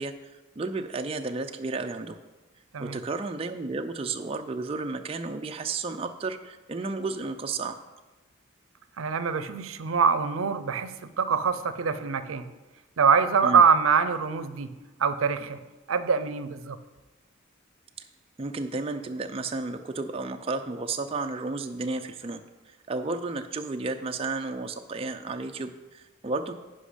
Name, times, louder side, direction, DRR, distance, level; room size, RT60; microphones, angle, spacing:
voice 1, 0.0-2.2 2.8-7.8 13.4-13.6 18.0-18.1 18.4-26.5, right 3 dB, 30° right, 6 dB, 0.4 m, -32 dB
voice 2, 9.0-12.5 13.0-14.7 15.0-15.6 15.9-16.8, right 6 dB, 85° right, 12 dB, 0.5 m, -24 dB
10.5 x 5.2 x 5.0 m, 1.1 s
head